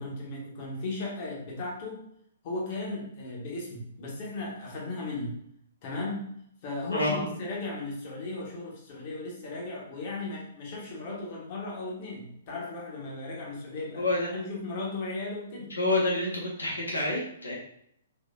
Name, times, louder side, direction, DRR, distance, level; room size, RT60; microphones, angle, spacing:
voice 1, 0.0-2.0 2.4-5.4 5.8-6.4 6.6-14.1 14.3-15.7, left 2 dB, 45° left, -3 dB, 1.4 m, -36 dB
voice 2, 6.9-7.3 13.9-14.3 15.8-17.5, left 2 dB, 80° left, -4 dB, 1.4 m, -28 dB
3.9 x 3.1 x 2.6 m, 0.71 s
figure-of-eight pair, 120°, 0 cm